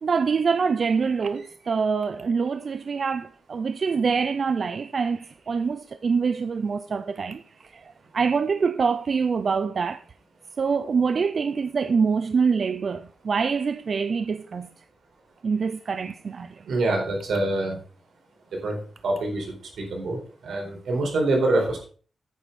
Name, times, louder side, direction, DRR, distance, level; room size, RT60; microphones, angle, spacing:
voice 1, 0.0-7.4 7.7-10.0 10.6-14.7 15.4-16.6, right 5 dB, 45° right, 0.5 m, -25 dB
voice 2, 16.6-17.8 18.5-18.8 19.0-21.8, right 2 dB, 85° right, 4.6 m, -25 dB
10.0 x 9.2 x 4.2 m
wide cardioid pair, 155°, 0 cm